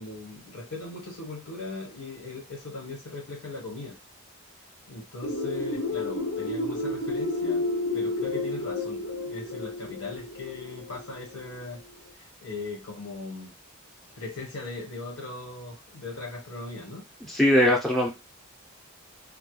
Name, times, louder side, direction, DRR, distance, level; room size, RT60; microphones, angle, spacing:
voice 1, 0.0-4.0 4.9-7.7 7.9-11.8 12.1-13.5 14.2-17.0, left 3 dB, 85° left, -1 dB, 1.2 m, -39 dB
sound 1, 5.2-11.8, left 2 dB, 50° left, 0.6 m, -31 dB
voice 2, 17.3-18.1, left 1 dB, ahead, -2 dB, 0.5 m, -20 dB
2.2 x 2.2 x 3.1 m, 0.26 s
head